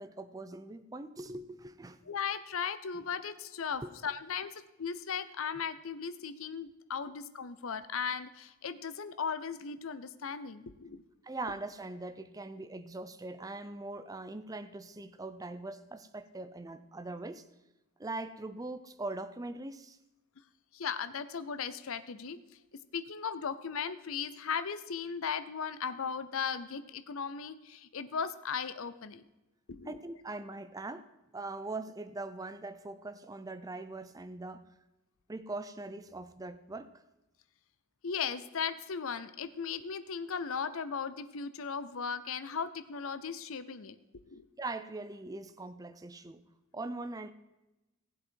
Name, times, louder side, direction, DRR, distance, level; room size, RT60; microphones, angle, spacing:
voice 1, 0.0-2.0 3.8-3.9 11.2-17.4 18.0-20.0 29.8-31.1 31.3-34.6 35.3-36.9 44.6-46.4 46.7-47.3, right 2 dB, 15° right, 11 dB, 0.5 m, -41 dB
voice 2, 2.0-11.0 20.7-22.4 22.9-29.2 29.7-30.0 38.0-44.0 44.3-44.5, left 6 dB, 65° left, 12 dB, 0.6 m, -37 dB
15.5 x 7.9 x 4.5 m, 0.99 s
head